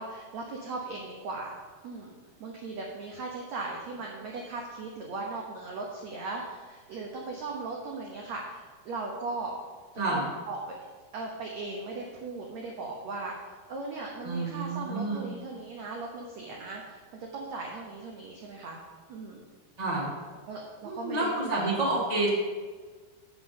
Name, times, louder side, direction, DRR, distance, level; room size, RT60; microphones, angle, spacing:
voice 1, 0.0-1.5 1.8-2.1 2.4-9.5 9.9-10.7 11.1-18.8 19.1-19.4 20.5-21.9, right 3 dB, 85° right, 0 dB, 1.5 m, -38 dB
voice 2, 14.2-15.3 19.8-20.1 20.8-22.3, right 2 dB, 40° right, -4 dB, 0.5 m, -29 dB
8.4 x 5.2 x 7.6 m, 1.5 s
omnidirectional pair, 4.6 m